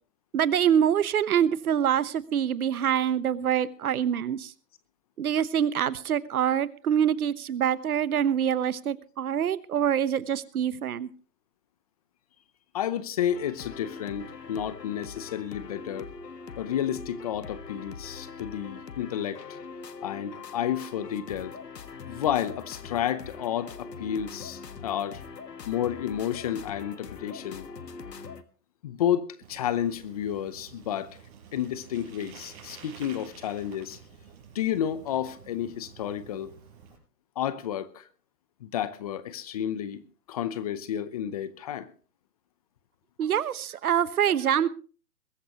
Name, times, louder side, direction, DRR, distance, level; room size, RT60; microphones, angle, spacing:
voice 1, 0.3-4.5 5.2-11.1 43.2-44.7, right 9 dB, 65° right, 1.1 m, -25 dB
voice 2, 12.7-16.1 16.6-19.4 20.0-21.5 22.1-25.2 25.7-27.7 28.8-31.2 31.5-34.0 34.5-36.6 37.4-38.0 38.6-40.0 40.3-41.9, left 10 dB, 25° left, 0.7 m, -31 dB
sound 1, 13.3-28.4, left 5 dB, 85° left, 1.6 m, -42 dB
Bicycle, 29.4-37.0, right 6 dB, 40° right, 6.4 m, -50 dB
22.0 x 13.0 x 3.0 m
hypercardioid pair, 145°, 48 cm